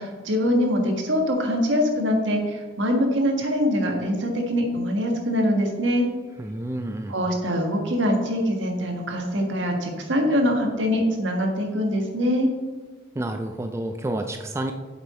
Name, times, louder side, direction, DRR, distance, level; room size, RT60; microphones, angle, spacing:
voice 1, 0.0-6.1 7.1-12.5, equal, 70° right, 2 dB, 1.7 m, -23 dB
voice 2, 6.4-7.2 13.2-14.7, right 1 dB, 15° right, 6 dB, 0.4 m, -29 dB
8.0 x 7.7 x 4.3 m, 1.3 s
head